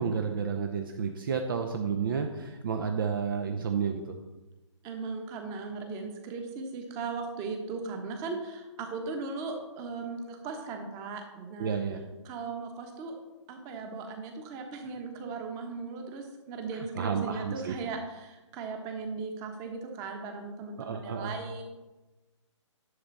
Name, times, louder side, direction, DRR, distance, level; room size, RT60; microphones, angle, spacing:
voice 1, 0.0-4.1 11.6-12.0 16.7-17.8 20.8-21.3, right 6 dB, 45° right, 5 dB, 0.8 m, -31 dB
voice 2, 4.8-11.8 12.2-13.2 13.5-21.6, right 4 dB, 20° right, 4 dB, 1.3 m, -38 dB
11.0 x 6.8 x 4.1 m, 1.1 s
figure-of-eight pair, 140°, 16 cm